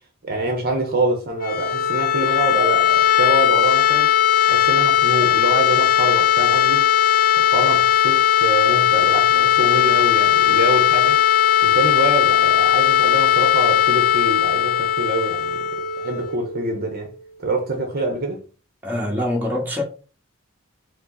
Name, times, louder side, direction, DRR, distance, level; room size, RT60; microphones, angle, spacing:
voice 1, 0.2-4.1 4.5-6.9 7.4-11.2 11.6-15.6 16.0-17.1 17.4-18.4, right 2 dB, 50° right, 0.8 m, -25 dB
sound 1, 1.3-17.1, left 10 dB, 45° left, 0.5 m, -18 dB
voice 2, 18.8-19.8, left 1 dB, 10° right, 1.3 m, -24 dB
5.2 x 2.0 x 3.9 m
head